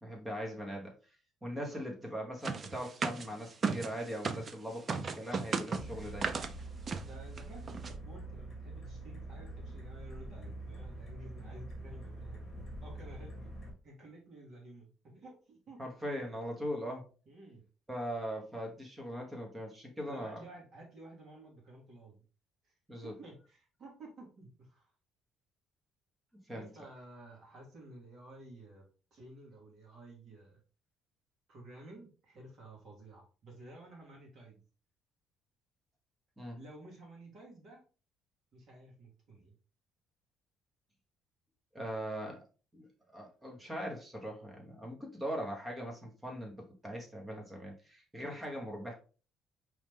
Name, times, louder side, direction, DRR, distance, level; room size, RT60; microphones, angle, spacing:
voice 1, 0.0-0.9 1.4-6.4 15.8-17.0 17.9-20.4 22.9-23.1 26.5-26.7 36.4-36.6 41.7-42.4 42.7-42.9 43.1-48.9, equal, 10° right, 0 dB, 1.1 m, -40 dB
voice 2, 1.5-1.9 7.0-12.4 12.8-13.5 13.8-15.8 17.3-17.6 20.1-22.2 22.6-22.7 23.0-24.9 26.5-30.6 31.5-34.6 36.6-37.8 38.5-39.6, right 2 dB, 40° right, -2 dB, 2.0 m, -53 dB
sound 1, 2.4-4.5 4.9-6.5 6.9-7.1 7.4-7.5 7.7-7.9, right 5 dB, 25° right, 0.3 m, -35 dB
sound 2, 5.8-13.7, right 2 dB, 10° left, 1.9 m, -45 dB
4.8 x 3.2 x 3.5 m, 0.36 s
cardioid pair, 180°, 0 cm